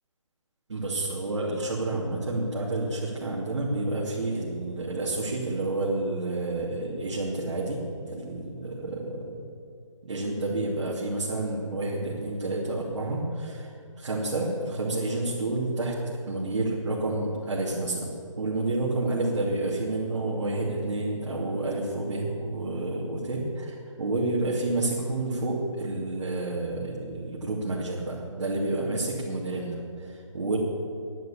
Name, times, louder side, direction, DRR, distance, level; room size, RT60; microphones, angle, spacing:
voice 1, 0.7-9.3 10.0-30.6, right 2 dB, 65° right, -6 dB, 2.7 m, -29 dB
10.5 x 10.5 x 8.4 m, 2.4 s
hypercardioid pair, 175°, 17 cm